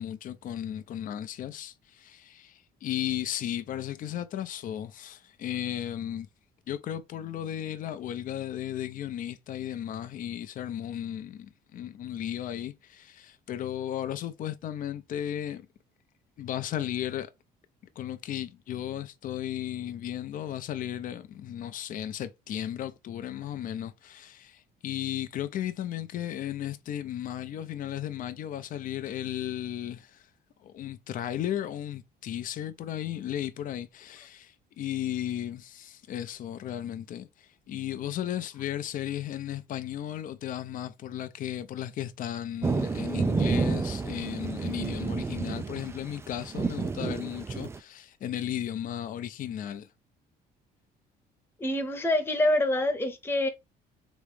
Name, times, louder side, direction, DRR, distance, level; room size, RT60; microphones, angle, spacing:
voice 1, 0.0-6.3 6.7-15.7 16.4-17.3 18.0-30.3 30.6-49.9, left 11 dB, 55° left, 0.5 m, -35 dB
sound 1, 42.6-47.8, right 4 dB, 15° right, 0.3 m, -30 dB
voice 2, 51.6-53.5, left 1 dB, 15° left, 0.9 m, -26 dB
3.6 x 3.1 x 3.3 m
cardioid pair, 110°, 17 cm